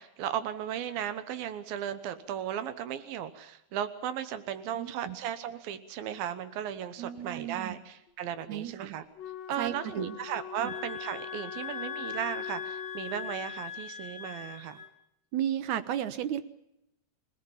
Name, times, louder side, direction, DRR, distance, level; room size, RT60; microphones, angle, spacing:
voice 1, 0.0-9.0 9.5-14.8, right 10 dB, 85° right, 12 dB, 3.0 m, -36 dB
voice 2, 4.7-5.2 7.0-7.8 8.5-8.9 9.6-10.2 10.6-10.7 15.3-16.4, right 10 dB, 65° right, 12 dB, 2.3 m, -34 dB
Wind instrument woodwind instrument, 9.1-13.6, left 7 dB, 55° left, 2.0 m, -43 dB
sound 1, 10.6-14.9, left 8 dB, 25° right, 0.4 m, -40 dB
26.5 x 17.5 x 7.2 m, 0.82 s
omnidirectional pair, 4.1 m